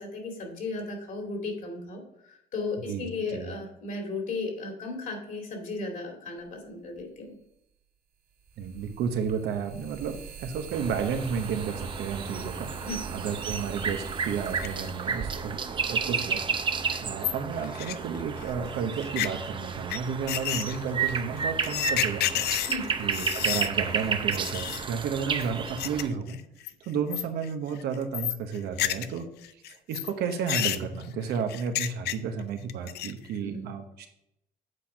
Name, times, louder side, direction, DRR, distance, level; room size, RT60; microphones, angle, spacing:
voice 1, 0.0-2.0 2.3-7.3 12.8-13.0 22.7-22.9 33.4-33.7, left 3 dB, 55° left, 1 dB, 2.4 m, -35 dB
sound 1, 7.0-7.1 8.4-16.4, right 7 dB, 55° right, 2.7 m, -43 dB
voice 2, 8.6-15.6 15.9-16.4 17.0-22.5 23.0-26.4 26.8-29.3 29.9-34.1, right 6 dB, 75° right, 5 dB, 1.1 m, -32 dB
sound 2, 10.7-26.1, right 5 dB, 30° right, 0.6 m, -32 dB
sound 3, 14.5-14.9 15.3-15.4 15.9-16.0 16.2-16.3 16.6-16.7 16.9-18.5 19.0-19.3 19.9-20.0 20.3-23.7 24.0-24.1 24.3-24.9 25.4-26.0 26.3-26.7 27.1-27.5 27.8-29.2 29.4-32.4 32.7-33.3, left 13 dB, 75° left, 0.5 m, -31 dB
8.1 x 4.4 x 5.1 m, 0.80 s
cardioid pair, 110°, 17 cm